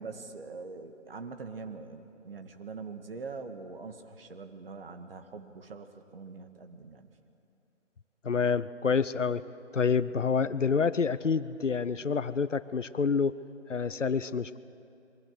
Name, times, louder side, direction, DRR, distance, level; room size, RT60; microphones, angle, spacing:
voice 1, 0.0-7.1, right 4 dB, 50° right, 7 dB, 1.9 m, -43 dB
voice 2, 8.2-9.4 9.7-13.4 13.7-14.6, left 5 dB, 75° left, 16 dB, 0.9 m, -28 dB
27.5 x 22.5 x 6.6 m, 2.7 s
figure-of-eight pair, 150°, 37 cm